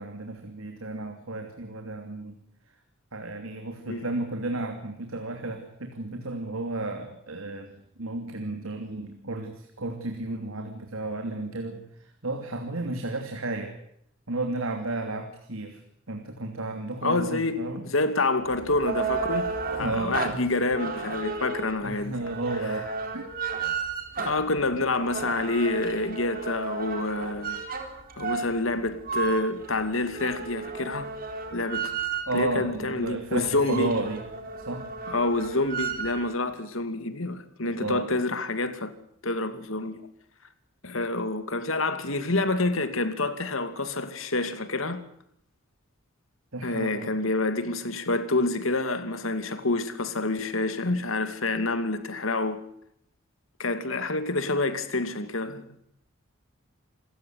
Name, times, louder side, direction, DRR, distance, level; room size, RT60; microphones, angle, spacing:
voice 1, 0.0-2.4 3.1-13.7 14.3-15.8 16.1-17.8 19.8-20.5 21.8-23.3 32.3-34.2 34.7-34.9 37.6-38.1 46.5-47.1, right 2 dB, 85° right, 3.0 m, -33 dB
voice 2, 17.0-22.2 22.6-22.8 24.2-27.6 28.2-31.1 31.5-31.9 32.3-33.9 35.1-38.9 39.2-40.0 40.8-45.0 46.6-52.6 53.6-55.6, left 2 dB, 70° left, 2.6 m, -28 dB
sound 1, 18.5-32.6 33.0-33.1 33.4-36.3, right 5 dB, 45° right, 4.0 m, -33 dB
27.5 x 15.5 x 9.5 m
head